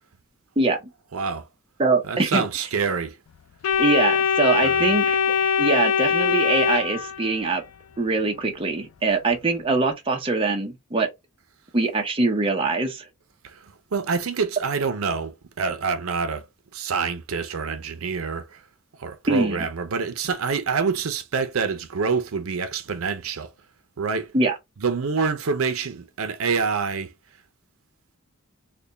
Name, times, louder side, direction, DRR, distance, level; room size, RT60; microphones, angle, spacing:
voice 1, 1.1-1.5 2.1-3.2 4.6-4.9 13.4-16.4 16.7-18.6 19.0-23.5 24.0-24.3 24.8-27.1, right 5 dB, 75° right, 0.6 m, -26 dB
voice 2, 1.8-2.4 3.8-5.2 5.6-7.6 8.0-11.1 11.7-13.1 19.3-19.7 24.3-24.5, right 3 dB, 25° right, 0.7 m, -23 dB
Organ, 3.6-7.6, left 6 dB, 85° left, 0.4 m, -22 dB
3.4 x 2.2 x 3.8 m
head